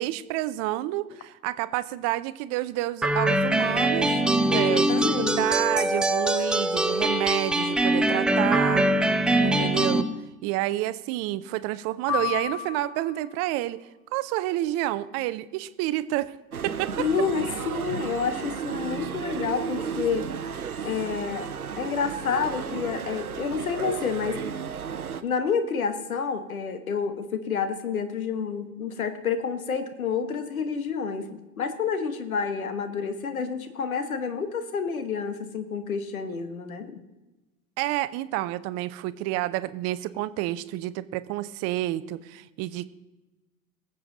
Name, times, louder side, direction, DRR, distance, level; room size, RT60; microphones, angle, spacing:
voice 1, 0.0-8.8 9.4-10.1 10.4-16.3 16.6-17.1 37.8-42.9, right 16 dB, 35° right, 16 dB, 0.6 m, -29 dB
sound 1, 3.0-10.0, right 1 dB, ahead, 0.3 m, -23 dB
voice 2, 4.5-5.4 9.3-9.5 17.0-20.3 20.8-21.5 21.8-24.4 25.2-37.0, left 6 dB, 75° left, 10 dB, 1.3 m, -29 dB
sound 2, 12.1-13.4, left 10 dB, 50° left, 2.5 m, -31 dB
sound 3, 16.5-25.2, right 7 dB, 85° right, 0.7 m, -33 dB
20.0 x 7.8 x 3.9 m, 1.1 s
figure-of-eight pair, 75°, 43 cm